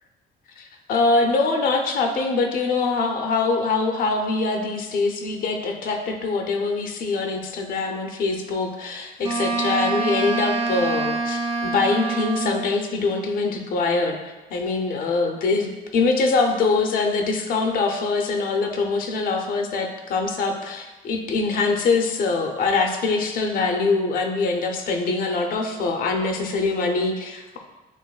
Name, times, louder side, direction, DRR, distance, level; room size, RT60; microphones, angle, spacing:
voice 1, 0.6-27.6, left 3 dB, 60° left, 3 dB, 0.6 m, -23 dB
Wind instrument woodwind instrument, 9.2-12.8, right 4 dB, 35° right, 0.4 m, -26 dB
7.1 x 2.6 x 2.3 m, 1.1 s
cardioid pair, 110°, 17 cm